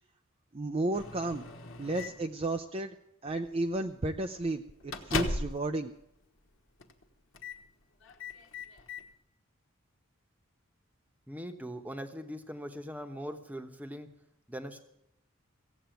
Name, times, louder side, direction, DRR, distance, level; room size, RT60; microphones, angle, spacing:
voice 1, 0.5-1.4 1.8-2.9 3.2-5.9, right 2 dB, 25° right, 5 dB, 0.5 m, -33 dB
Microwave oven, 0.9-2.3 3.3-3.5 3.8-4.0 4.3-5.7 6.0-6.1 6.8-7.0 7.3-7.6 8.0-9.1, left 3 dB, 65° left, 1.3 m, -38 dB
voice 2, 11.3-14.1 14.5-14.8, equal, 5° right, 6 dB, 1.1 m, -41 dB
16.0 x 8.2 x 9.1 m, 0.82 s
head